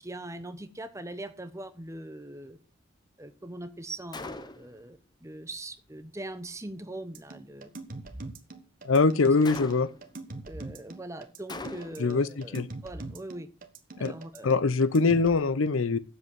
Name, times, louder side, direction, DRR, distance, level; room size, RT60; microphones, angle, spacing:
voice 1, 0.0-2.6 3.2-7.7 10.5-13.5 14.0-14.5, right 1 dB, 15° right, 0.9 m, -41 dB
Gunshot gunfire, 4.1-4.8 9.4-10.1 11.5-12.2, left 3 dB, 20° left, 0.7 m, -40 dB
sound 1, 7.1-15.3, right 2 dB, 40° right, 1.4 m, -42 dB
voice 2, 8.8-9.9 12.0-12.7 14.0-14.1 14.4-16.0, left 4 dB, 75° left, 0.6 m, -23 dB
8.4 x 7.8 x 7.3 m
head